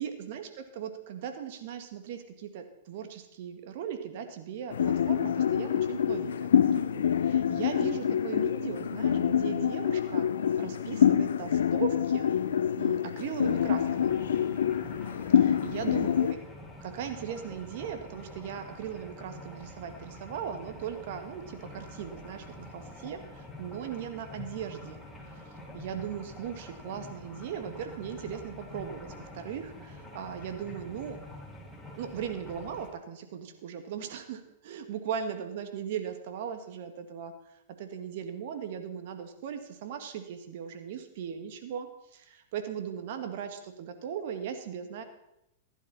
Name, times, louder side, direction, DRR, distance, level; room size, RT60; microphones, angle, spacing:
voice 1, 0.0-10.3 10.6-12.3 12.7-14.1 15.4-16.4 16.8-29.1 29.3-31.2 32.0-37.3 37.8-45.0, right 8 dB, 60° right, 7 dB, 2.0 m, -38 dB
sound 1, 4.7-16.3, left 9 dB, 75° left, 0.7 m, -26 dB
sound 2, 13.4-32.9, left 1 dB, ahead, 3.8 m, -46 dB
15.5 x 11.5 x 4.3 m, 0.86 s
hypercardioid pair, 110°, 0 cm